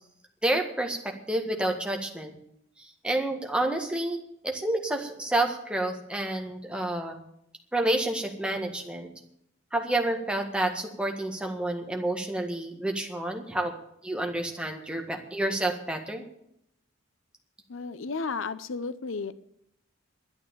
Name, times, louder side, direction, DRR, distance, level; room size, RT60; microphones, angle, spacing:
voice 1, 0.4-2.3 2.8-7.2 7.7-9.1 9.7-13.7 14.0-16.2, right 1 dB, 5° right, 3 dB, 1.6 m, -29 dB
voice 2, 17.7-19.3, left 4 dB, 90° left, 15 dB, 0.7 m, -33 dB
11.5 x 9.9 x 8.5 m, 0.76 s
head